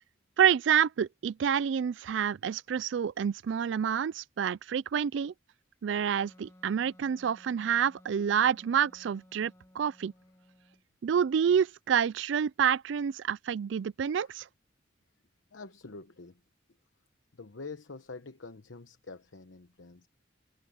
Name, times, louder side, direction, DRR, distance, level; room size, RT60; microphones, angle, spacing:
voice 1, 0.4-5.3 5.8-10.1 11.0-14.5, right 8 dB, 70° right, 0.4 m, -28 dB
Wind instrument woodwind instrument, 6.2-10.8, left 1 dB, 15° left, 1.9 m, -58 dB
voice 2, 15.5-16.4 17.4-20.1, left 3 dB, 85° left, 1.0 m, -46 dB
head